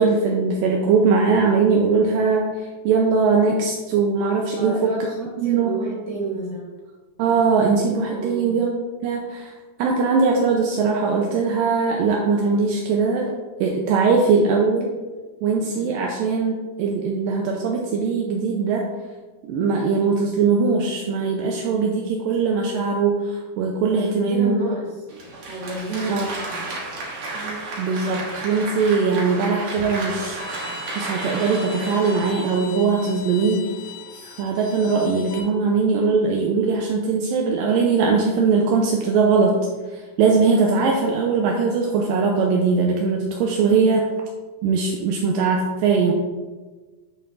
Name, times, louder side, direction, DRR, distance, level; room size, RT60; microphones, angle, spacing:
voice 1, 0.0-4.9 5.4-5.7 7.2-8.8 9.0-9.5 9.8-13.3 13.6-14.9 15.4-18.9 19.4-24.7 26.1-26.5 27.8-30.4 31.0-33.7 34.2-39.6 39.9-44.1 44.6-46.1, right 4 dB, 80° right, 0 dB, 2.2 m, -20 dB
voice 2, 4.5-6.7 8.1-8.6 15.7-15.8 23.9-24.9 25.5-26.6 27.3-27.6, right 3 dB, 40° right, -4 dB, 3.3 m, -30 dB
Applause, 25.1-33.2, right 2 dB, 60° right, 2.8 m, -33 dB
Bowed string instrument, 30.4-35.4, left 5 dB, 75° left, 2.0 m, -39 dB
11.5 x 5.5 x 2.5 m, 1.3 s
omnidirectional pair, 4.5 m